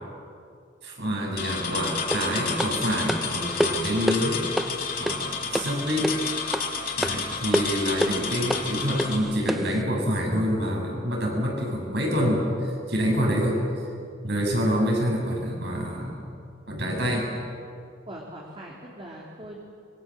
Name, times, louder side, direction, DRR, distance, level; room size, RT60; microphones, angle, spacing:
voice 1, 0.8-4.5 5.0-6.1 7.0-13.6 14.2-16.3 16.7-17.3, equal, 60° right, 0 dB, 6.7 m, -26 dB
sound 1, 1.4-9.2, left 5 dB, 50° left, 4.1 m, -31 dB
sound 2, 2.1-9.8, equal, ahead, 0.7 m, -30 dB
voice 2, 16.9-17.3 18.1-19.6, right 1 dB, 30° right, -3 dB, 2.8 m, -42 dB
25.0 x 23.0 x 7.6 m, 2.4 s
head